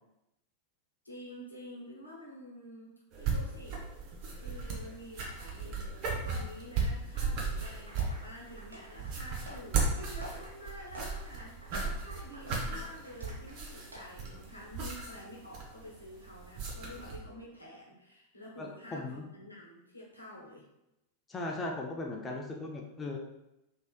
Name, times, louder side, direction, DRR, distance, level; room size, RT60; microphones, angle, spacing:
voice 1, 1.0-3.8 4.4-20.6, left 1 dB, 85° left, -4 dB, 0.8 m, -49 dB
sound 1, 3.1-17.2, right 4 dB, 40° right, 0.7 m, -36 dB
sound 2, 7.6-13.6 13.9-14.0, equal, 70° right, 1.1 m, -50 dB
voice 2, 18.6-19.3 21.3-23.2, left 2 dB, 15° left, 0 dB, 0.4 m, -38 dB
3.0 x 2.8 x 2.3 m, 0.90 s
figure-of-eight pair, 90°, 0 cm